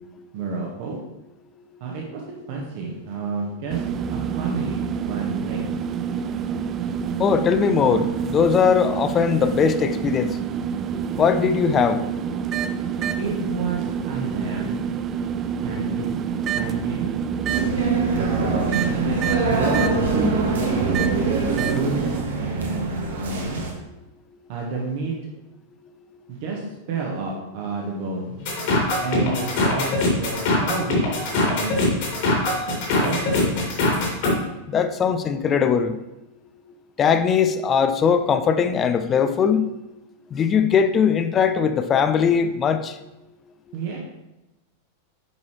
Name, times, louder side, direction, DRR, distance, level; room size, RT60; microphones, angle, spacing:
voice 1, 0.3-1.0 1.8-3.8 4.1-5.7 13.2-14.9 15.6-16.2 16.5-17.1 18.1-18.9 19.3-19.8 20.1-21.0 21.5-23.6 24.5-25.1 26.3-28.7 29.0-31.9 33.0-33.5 43.7-44.0, right 3 dB, 50° right, -1 dB, 1.3 m, -30 dB
sound 1, 3.7-22.2, right 7 dB, 30° right, 0.4 m, -27 dB
voice 2, 7.2-10.3 11.2-12.0 34.7-35.9 37.0-39.7 40.3-42.9, left 7 dB, 25° left, 9 dB, 0.5 m, -20 dB
sound 2, 17.5-23.7, right 3 dB, 65° right, 1.4 m, -24 dB
sound 3, 28.5-34.3, left 2 dB, 50° left, 2.5 m, -22 dB
9.5 x 5.5 x 3.2 m, 0.96 s
figure-of-eight pair, 90°, 0 cm